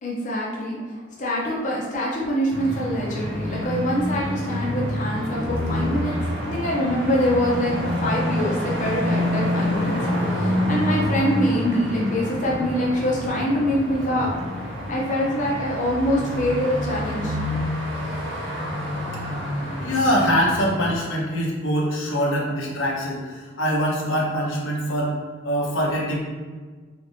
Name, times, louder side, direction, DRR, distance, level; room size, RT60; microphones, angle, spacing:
voice 1, 0.0-6.2 6.5-14.3 14.9-17.4, equal, 40° left, -4 dB, 0.6 m, -25 dB
sound 1, 2.5-21.0, left 1 dB, 80° right, 1.2 m, -27 dB
voice 2, 19.8-25.1 25.4-26.2, equal, 85° left, -3 dB, 0.9 m, -23 dB
3.7 x 3.4 x 2.6 m, 1.4 s
head